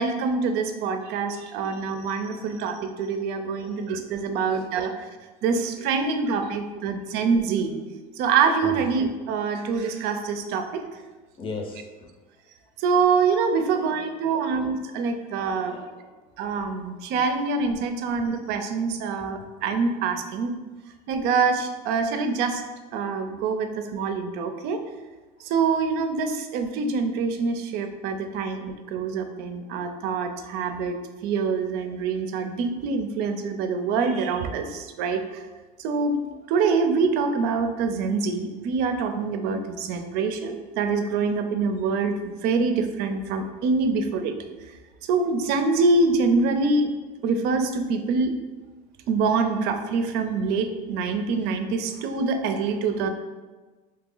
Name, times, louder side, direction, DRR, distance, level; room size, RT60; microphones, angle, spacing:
voice 1, 0.0-4.9 5.4-7.8 8.2-10.8 12.8-15.8 16.4-20.5 21.1-22.6 22.9-24.8 25.4-31.0 31.2-35.4 35.8-36.2 36.5-44.3 45.1-46.9 47.2-48.3 49.1-53.1, right 4 dB, 65° right, 7 dB, 0.5 m, -25 dB
voice 2, 3.4-4.1 6.5-6.6 8.1-8.2 8.6-8.9 9.5-9.6 11.4-12.1 13.5-13.8 14.1-14.5 14.9-15.0 15.4-16.1, left 3 dB, 30° left, 3 dB, 0.6 m, -40 dB
3.0 x 2.8 x 3.8 m, 1.3 s
supercardioid pair, 105°, 18 cm